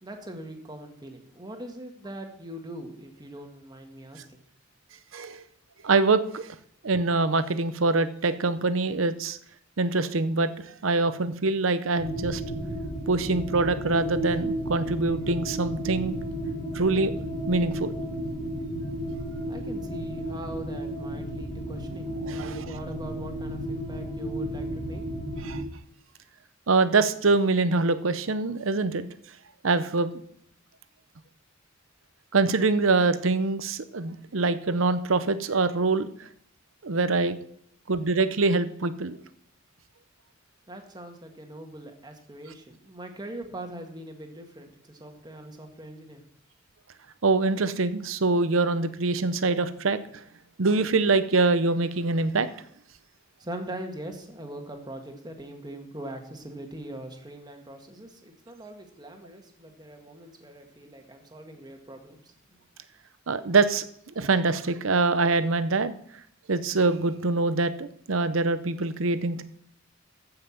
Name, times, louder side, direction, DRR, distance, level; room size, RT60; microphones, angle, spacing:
voice 1, 0.0-4.4 19.5-25.0 40.7-46.2 53.4-62.3, right 1 dB, 20° right, 4 dB, 1.6 m, -41 dB
voice 2, 5.1-5.4 5.8-6.5 6.8-9.4 9.8-12.4 13.1-16.1 16.7-17.1 17.5-18.0 22.2-22.7 25.4-25.6 26.7-29.0 29.6-30.1 32.3-36.3 36.8-37.4 37.9-39.2 47.2-50.0 50.6-52.5 63.3-63.8 64.2-65.9 66.5-69.4, right 3 dB, 80° right, 13 dB, 0.8 m, -24 dB
sound 1, 12.0-25.6, equal, 75° left, 4.2 m, -33 dB
14.5 x 5.8 x 5.8 m, 0.69 s
head